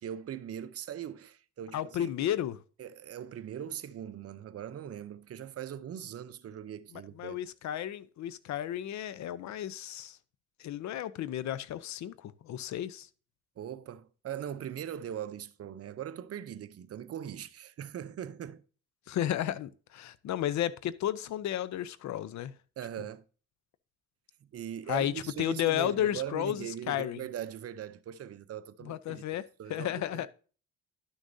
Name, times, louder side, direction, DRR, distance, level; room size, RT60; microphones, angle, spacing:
voice 1, 0.0-2.1 2.8-7.4 13.6-18.6 22.8-23.2 24.4-29.2 29.6-30.3, right 10 dB, 50° right, 0.6 m, -40 dB
voice 2, 1.7-2.6 7.2-10.2 10.6-13.1 19.1-22.5 24.9-25.1 25.4-27.2 28.8-29.4 29.7-30.3, left 12 dB, 70° left, 0.6 m, -33 dB
11.5 x 6.4 x 2.6 m
cardioid pair, 90°, 30 cm